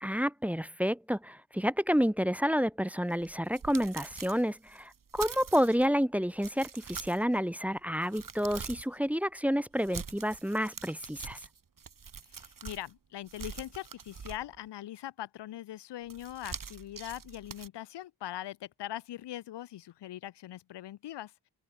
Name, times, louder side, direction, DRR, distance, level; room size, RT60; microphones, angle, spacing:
voice 1, 0.0-11.4, equal, 5° right, 1.1 m, -29 dB
sound 1, 3.1-5.9 6.4-7.4 7.8-9.0 9.8-12.9 13.3-14.7 16.1-17.7, right 6 dB, 50° right, 6.1 m, -45 dB
voice 2, 12.3-21.5, left 13 dB, 85° left, 1.1 m, -41 dB
open air
cardioid pair, 85°, 41 cm